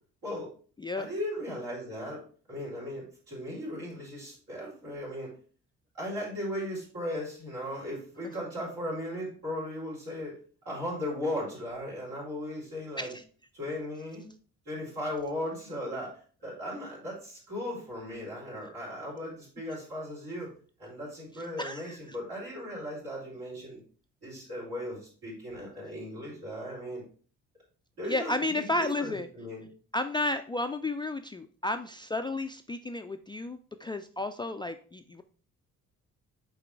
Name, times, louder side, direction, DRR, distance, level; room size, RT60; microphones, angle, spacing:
voice 1, 1.0-2.2 2.5-5.3 5.9-10.4 10.6-13.1 13.5-14.2 14.7-20.5 20.8-23.8 24.2-27.0 28.0-29.7, left 1 dB, 75° right, -6 dB, 3.8 m, -37 dB
voice 2, 21.6-22.0 28.0-29.3 29.9-35.2, left 2 dB, 10° left, 7 dB, 0.3 m, -32 dB
8.5 x 3.7 x 4.6 m, 0.41 s
figure-of-eight pair, 45°, 44 cm